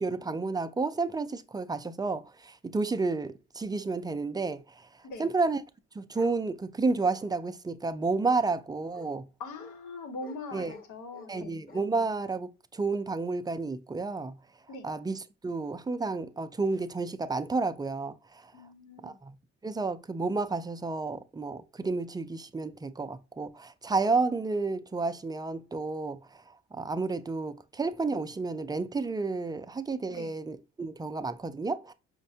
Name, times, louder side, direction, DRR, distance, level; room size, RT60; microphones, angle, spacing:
voice 1, 0.0-4.9 5.2-5.6 6.0-9.2 10.5-10.7 11.3-14.3 14.8-18.5 19.0-19.3 19.6-26.2 26.7-31.9, right 3 dB, 15° right, 0.3 m, -31 dB
Bark, 6.1-6.4 7.0-7.5 8.2-8.4 8.9-9.1 9.6-9.8 10.2-10.4 10.7-11.3 11.7-11.8, left 3 dB, 30° left, 1.1 m, -50 dB
voice 2, 9.4-11.7 14.7-14.9 18.5-19.2 30.1-30.3, left 3 dB, 80° left, 1.0 m, -42 dB
5.1 x 2.1 x 2.7 m
cardioid pair, 90°, 30 cm